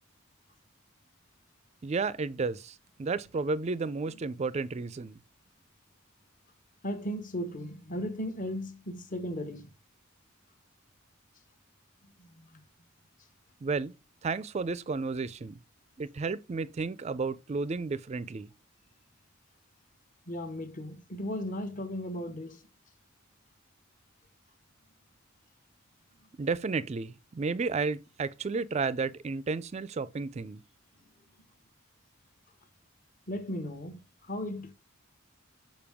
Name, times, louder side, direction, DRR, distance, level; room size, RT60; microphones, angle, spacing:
voice 1, 1.8-5.2 13.6-13.9 14.2-15.6 16.0-18.5 26.4-30.6, right 4 dB, 30° right, 0.3 m, -32 dB
voice 2, 6.8-9.7 12.2-12.6 20.3-22.7 33.3-34.7, equal, 40° left, 0.9 m, -36 dB
6.9 x 5.3 x 3.5 m
head